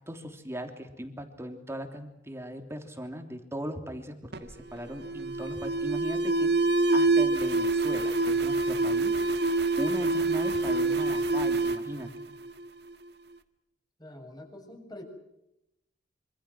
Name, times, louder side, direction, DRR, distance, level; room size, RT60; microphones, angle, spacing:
voice 1, 0.1-9.2 9.8-12.1, equal, 15° right, 5 dB, 3.1 m, -39 dB
Alarm, 4.3-12.9, right 3 dB, 60° right, 1.8 m, -26 dB
voice 2, 14.0-15.0, left 1 dB, 20° left, 4 dB, 7.1 m, -45 dB
26.5 x 26.5 x 6.3 m, 0.86 s
head